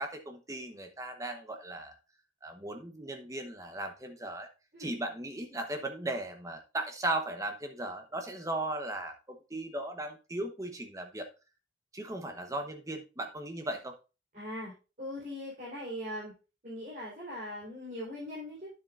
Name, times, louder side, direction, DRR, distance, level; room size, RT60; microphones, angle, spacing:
voice 1, 0.0-1.9 2.4-4.5 4.8-11.3 11.9-13.9, right 2 dB, 15° right, 5 dB, 1.0 m, -37 dB
voice 2, 14.3-14.7 15.0-16.3 16.6-18.7, left 1 dB, 40° right, -7 dB, 3.9 m, -40 dB
9.7 x 7.3 x 2.5 m, 0.31 s
head